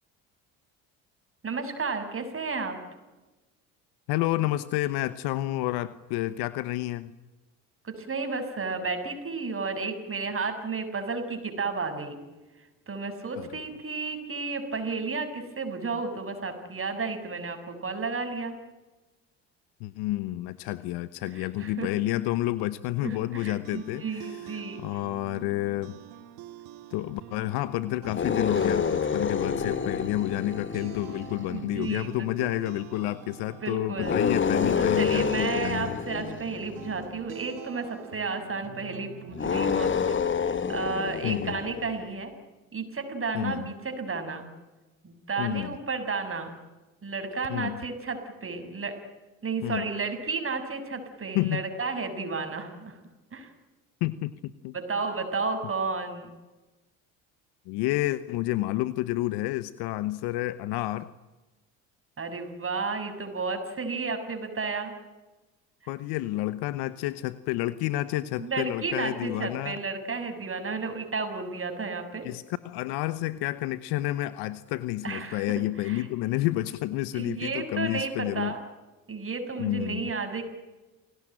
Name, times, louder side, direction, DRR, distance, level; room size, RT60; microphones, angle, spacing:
voice 1, 1.4-2.8 7.8-12.2 12.9-18.6 21.3-21.9 23.0-25.0 31.5-32.3 33.6-34.2 34.8-42.3 42.7-44.5 45.0-46.5 47.0-49.0 49.4-53.0 53.3-53.5 54.7-56.3 62.2-64.9 68.4-72.2 75.0-75.4 75.8-76.1 77.1-78.6 79.1-80.4, right 4 dB, 35° right, 7 dB, 6.6 m, -32 dB
voice 2, 4.1-7.1 13.4-13.5 19.8-26.0 26.9-36.0 41.2-41.6 43.3-43.7 45.4-45.8 47.5-47.8 49.6-49.9 51.3-51.7 54.0-54.7 57.7-61.1 65.9-69.8 72.2-78.5 79.6-80.1, left 16 dB, 75° left, 15 dB, 1.1 m, -30 dB
sound 1, 23.4-40.3, right 12 dB, 70° right, 2.2 m, -45 dB
sound 2, 28.0-31.6 34.0-37.1 39.3-42.0, left 6 dB, 30° left, 1.5 m, -28 dB
28.0 x 18.5 x 9.0 m, 1.1 s
hypercardioid pair, 70°, 40 cm